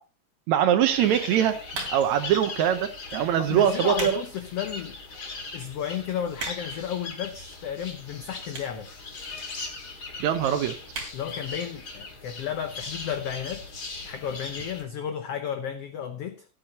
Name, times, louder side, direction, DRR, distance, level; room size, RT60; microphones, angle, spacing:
voice 1, 0.5-1.6 1.9-4.2 10.2-10.7, right 10 dB, 75° right, 1.9 m, -23 dB
sound 1, 0.9-14.8, left 3 dB, 35° left, 2.1 m, -39 dB
sound 2, 1.7-2.2 3.0-3.2 3.7-4.2 4.6-4.7 5.4-5.5 5.7-5.8 6.0-6.8 7.6-7.7 8.5-8.8 9.1-9.2 9.4-9.5 9.7-9.8 10.2-10.4 10.9-11.2 11.6-11.7 11.8-11.9, right 3 dB, 50° right, 3.7 m, -36 dB
voice 2, 3.4-5.0 5.5-8.9 11.1-13.7 14.0-16.5, left 8 dB, 85° left, 1.3 m, -33 dB
16.5 x 9.0 x 2.9 m
omnidirectional pair, 3.8 m